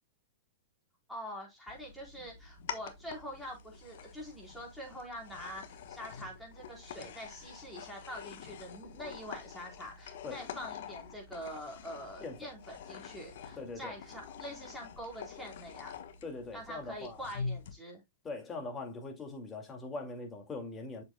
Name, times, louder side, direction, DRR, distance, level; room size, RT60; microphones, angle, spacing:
voice 1, 1.1-15.9 16.5-18.0, equal, 5° left, 4.2 m, -45 dB
sound 1, 1.7-17.7, left 6 dB, 65° left, 1.2 m, -46 dB
voice 2, 13.6-13.9 16.2-17.3 18.2-21.0, left 3 dB, 20° left, 2.3 m, -41 dB
7.5 x 6.7 x 2.3 m
hypercardioid pair, 130°, 0 cm